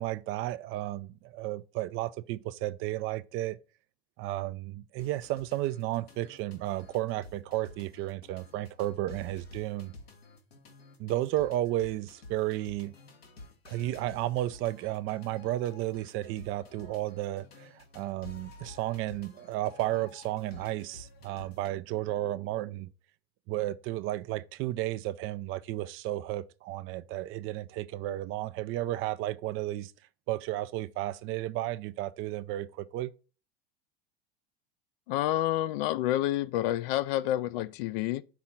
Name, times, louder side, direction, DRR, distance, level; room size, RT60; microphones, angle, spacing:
voice 1, 0.0-3.6 4.2-9.9 11.0-12.9 13.7-22.9 23.5-29.9 30.3-33.1, right 15 dB, 45° right, 0.5 m, -33 dB
sound 1, 5.0-21.7, left 2 dB, 85° left, 1.7 m, -52 dB
voice 2, 35.1-38.2, left 14 dB, 60° left, 0.6 m, -29 dB
5.8 x 3.8 x 5.7 m
hypercardioid pair, 90°, 30 cm